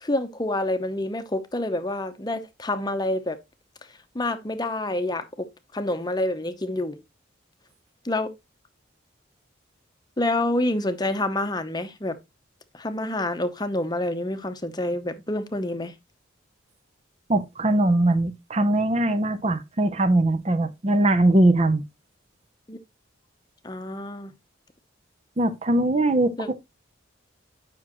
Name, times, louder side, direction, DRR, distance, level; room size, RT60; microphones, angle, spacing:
voice 1, 0.0-3.4 4.1-5.5 5.7-7.0 8.0-8.3 10.2-12.2 12.7-15.9 22.7-22.8 23.6-24.3 26.4-26.5, left 1 dB, 20° left, 0.8 m, -27 dB
voice 2, 17.3-21.8 25.4-26.4, right 1 dB, 35° right, 0.6 m, -21 dB
9.7 x 6.1 x 3.0 m
head